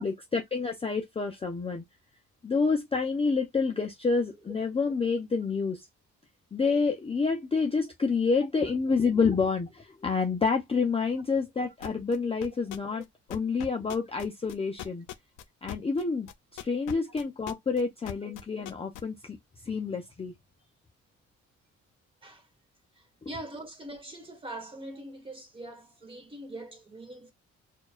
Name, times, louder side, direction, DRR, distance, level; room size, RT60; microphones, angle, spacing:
voice 1, 0.0-1.8 2.4-5.9 6.5-13.0 13.3-15.0 15.6-16.3 16.6-19.4 19.6-20.3 23.2-23.3, left 4 dB, 20° left, 0.5 m, -28 dB
sound 1, 11.8-12.2 12.4-13.0 13.3-19.0, left 12 dB, 80° left, 0.5 m, -39 dB
voice 2, 23.0-27.3, right 1 dB, 15° right, 1.4 m, -43 dB
4.4 x 2.4 x 2.4 m
cardioid pair, 90°, 30 cm